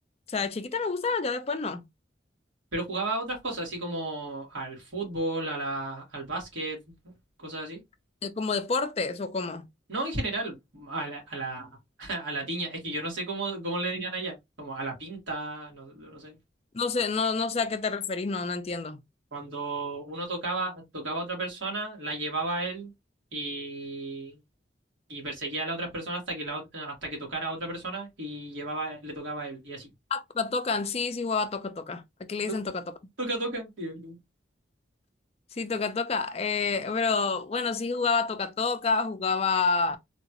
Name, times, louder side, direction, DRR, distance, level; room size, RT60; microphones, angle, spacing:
voice 1, 0.3-1.9 8.2-9.7 16.7-19.0 30.1-32.8 35.6-40.0, left 4 dB, 30° left, 0.4 m, -28 dB
voice 2, 2.7-6.8 7.4-7.8 9.9-11.7 12.0-16.4 19.3-22.9 23.3-24.4 25.1-29.9 32.5-32.6 33.2-34.2, right 2 dB, 85° right, 2.0 m, -33 dB
3.8 x 2.4 x 2.8 m
head